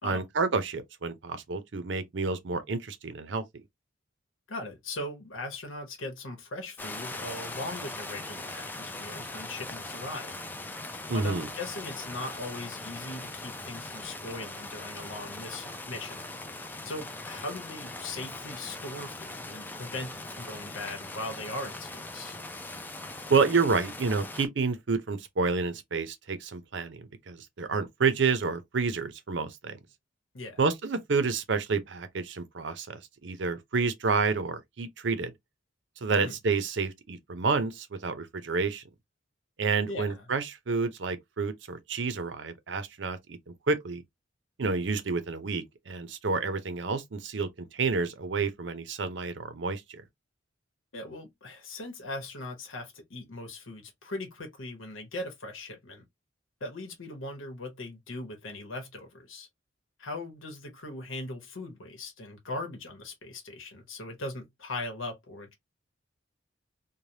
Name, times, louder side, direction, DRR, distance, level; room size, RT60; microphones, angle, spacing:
voice 1, 0.0-3.4 11.1-11.5 23.3-29.8 30.6-35.3 36.0-38.8 39.6-44.0 44.6-50.0, right 4 dB, 65° right, 0.6 m, -29 dB
voice 2, 4.5-10.4 11.1-16.3 16.8-22.4 30.3-30.6 36.2-36.4 39.9-40.3 50.9-56.0 56.6-59.5 60.0-65.5, left 2 dB, 90° left, 1.0 m, -39 dB
sound 1, 6.8-24.5, left 2 dB, 10° left, 0.3 m, -40 dB
3.2 x 2.2 x 2.6 m
head